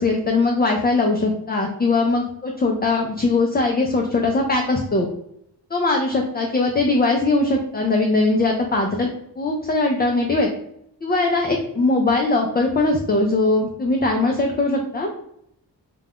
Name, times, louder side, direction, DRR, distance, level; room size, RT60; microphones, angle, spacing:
voice 1, 0.0-5.1 5.7-9.1 9.4-10.5 11.0-15.1, left 2 dB, 25° left, 1 dB, 0.4 m, -20 dB
2.4 x 2.2 x 3.4 m, 0.73 s
wide cardioid pair, 65°, 42 cm